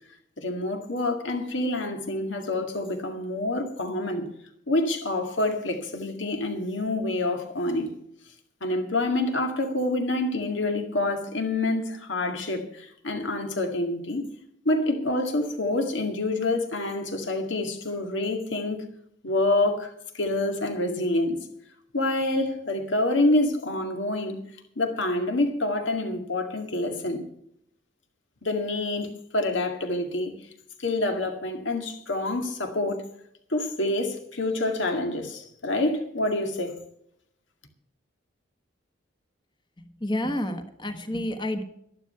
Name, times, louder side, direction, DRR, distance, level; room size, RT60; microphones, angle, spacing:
voice 1, 0.4-4.3 4.7-7.9 8.6-14.3 14.6-18.9 19.2-21.4 21.9-27.3 28.4-30.5 30.8-33.1 33.5-36.8, left 2 dB, 70° left, 2.1 m, -27 dB
voice 2, 39.8-41.6, left 1 dB, 25° left, 1.3 m, -30 dB
12.0 x 11.5 x 5.7 m
head